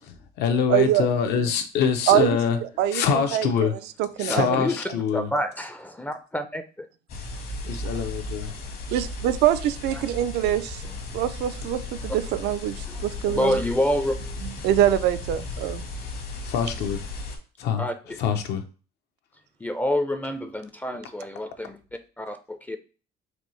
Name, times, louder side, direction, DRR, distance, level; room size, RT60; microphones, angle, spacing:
voice 1, 0.0-2.6 2.9-3.7 4.2-5.3 7.6-8.6 16.4-17.0 17.6-17.9 18.2-18.6, left 7 dB, 80° left, 0.7 m, -25 dB
voice 2, 0.7-1.1 2.1-2.4 2.8-3.0 3.3-3.7 4.0-4.5 8.9-10.8 11.1-12.8 13.0-13.6 14.4-15.9, right 12 dB, 80° right, 0.4 m, -23 dB
voice 3, 4.3-4.8 5.1-6.9 9.9-10.1 10.8-11.0 12.9-14.4 17.8-18.2 19.6-21.8 22.2-22.8, left 1 dB, 10° left, 0.3 m, -28 dB
sound 1, 7.1-17.4, left 2 dB, 60° left, 1.1 m, -35 dB
4.3 x 2.7 x 3.1 m
cardioid pair, 110°, 17 cm